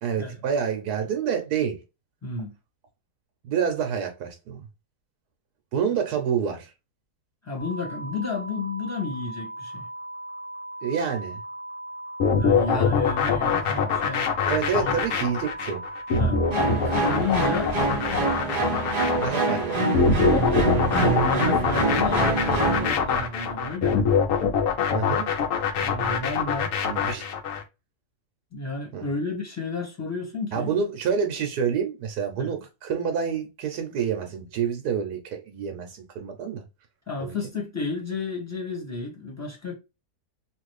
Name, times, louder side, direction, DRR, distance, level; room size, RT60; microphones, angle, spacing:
voice 1, 0.0-1.8 3.4-4.7 5.7-6.7 10.8-11.4 14.4-15.8 16.1-16.3 19.2-19.9 24.9-25.3 26.8-27.3 28.9-29.0 30.5-36.6 37.2-37.3, right 7 dB, 80° right, 1.2 m, -28 dB
voice 2, 2.2-2.5 7.4-9.8 12.4-14.5 14.7-14.9 16.2-16.4 16.8-17.8 20.2-24.1 25.8-26.7 28.5-30.7 32.4-32.5 37.1-39.7, left 3 dB, 10° left, 1.0 m, -31 dB
sound 1, 7.6-17.1, right 1 dB, 90° left, 1.6 m, -38 dB
sound 2, 12.2-27.6, left 5 dB, 65° left, 1.0 m, -24 dB
sound 3, 16.5-22.9, right 2 dB, 35° right, 0.7 m, -25 dB
3.1 x 2.5 x 3.0 m
omnidirectional pair, 1.7 m